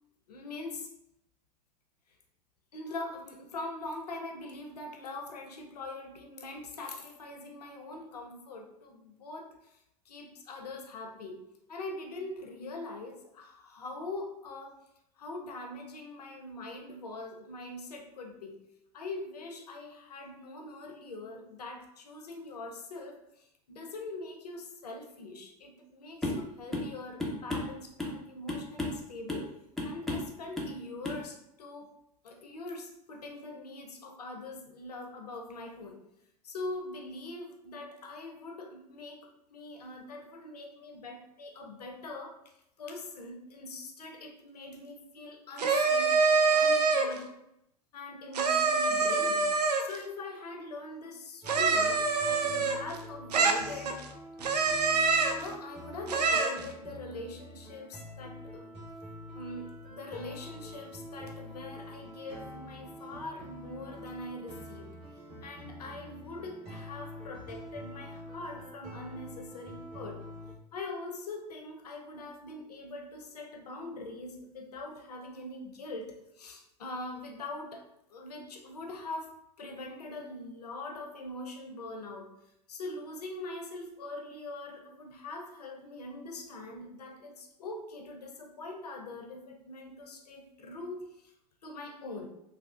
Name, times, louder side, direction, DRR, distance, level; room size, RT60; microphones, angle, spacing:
voice 1, 0.3-0.9 2.7-9.8 10.1-11.4 11.7-14.8 15.2-18.6 18.9-29.5 29.8-31.9 32.2-36.0 36.4-46.2 46.5-47.4 47.9-49.5 49.8-54.1 55.1-58.7 59.3-64.9 65.4-70.2 70.7-77.8 78.1-82.3 82.7-91.3 91.6-92.3, left 2 dB, 80° left, 3 dB, 0.6 m, -42 dB
sound 1, 26.2-26.5 26.7-26.9 27.2-28.2 28.5-29.0 29.3-29.5 29.8-30.3 30.6-30.8 31.0-31.2, left 1 dB, ahead, 0.6 m, -33 dB
sound 2, 45.6-47.2 48.3-50.0 51.5-53.0 53.3-54.1 54.4-55.5 56.1-56.6, right 4 dB, 80° right, 0.4 m, -25 dB
sound 3, 51.4-70.5, left 1 dB, 30° right, 1.3 m, -46 dB
3.3 x 2.3 x 2.3 m, 0.82 s
hypercardioid pair, 90°, 20 cm